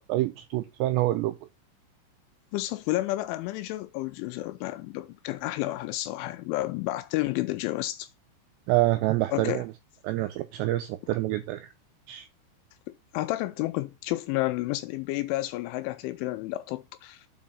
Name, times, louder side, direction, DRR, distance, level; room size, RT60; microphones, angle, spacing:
voice 1, 0.0-1.3 8.7-9.7 10.0-11.7 12.1-12.3, right 17 dB, 90° right, 2.5 m, -27 dB
voice 2, 2.5-8.1 9.3-9.6 13.1-17.3, left 17 dB, 85° left, 2.9 m, -31 dB
7.5 x 4.9 x 5.5 m
omnidirectional pair, 5.7 m